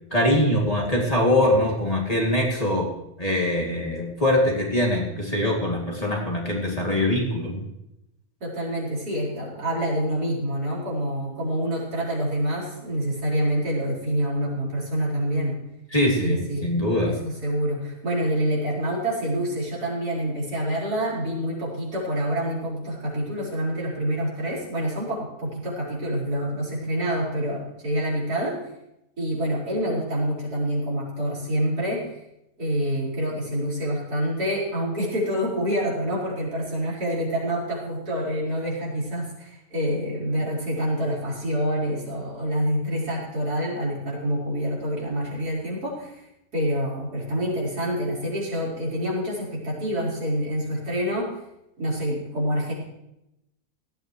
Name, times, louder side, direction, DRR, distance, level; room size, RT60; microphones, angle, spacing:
voice 1, 0.1-2.9 3.2-7.6 15.9-17.1, left 1 dB, 25° left, -2 dB, 2.7 m, -23 dB
voice 2, 8.4-15.6 16.2-16.8 17.1-28.6 29.2-32.2 32.6-46.3 46.5-51.3 51.8-52.7, equal, 85° right, -6 dB, 5.4 m, -27 dB
17.5 x 13.0 x 3.2 m, 0.86 s
omnidirectional pair, 1.6 m